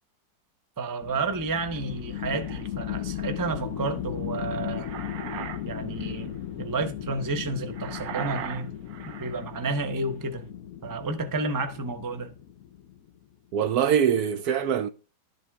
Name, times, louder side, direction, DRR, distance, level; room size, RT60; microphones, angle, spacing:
voice 1, 0.8-4.9 5.6-8.7 9.2-10.5 10.8-12.3, right 3 dB, 30° right, 0.3 m, -31 dB
sound 1, 1.0-13.1, left 11 dB, 70° left, 0.9 m, -36 dB
sound 2, 1.8-2.7 4.5-5.6 5.9-6.2 7.7-9.5, right 9 dB, 90° right, 1.5 m, -38 dB
voice 2, 13.5-14.9, right 8 dB, 70° right, 1.0 m, -23 dB
12.5 x 7.9 x 2.3 m
omnidirectional pair, 1.9 m